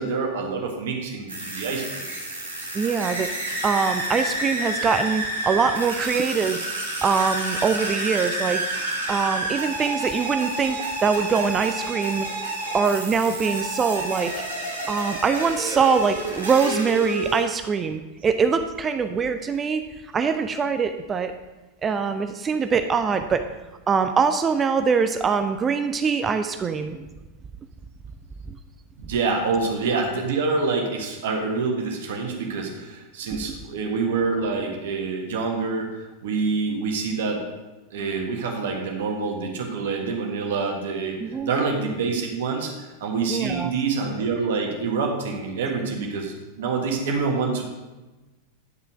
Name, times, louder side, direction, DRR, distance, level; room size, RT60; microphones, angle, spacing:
voice 1, 0.0-2.0 29.0-35.9 36.2-37.4 37.9-41.2 41.4-47.6, right 4 dB, 55° right, 2 dB, 1.5 m, -26 dB
sound 1, 1.3-17.4, right 1 dB, 75° right, 1.8 m, -29 dB
voice 2, 2.7-3.3 3.6-6.7 7.0-8.7 9.1-12.3 12.7-14.3 14.9-19.8 20.1-21.3 21.8-23.4 23.9-27.1 28.5-28.6 33.3-33.4 41.2-41.5 43.3-43.7, right 5 dB, 20° right, 8 dB, 0.4 m, -23 dB
9.6 x 5.6 x 5.0 m, 1.1 s
figure-of-eight pair, 90°, 0 cm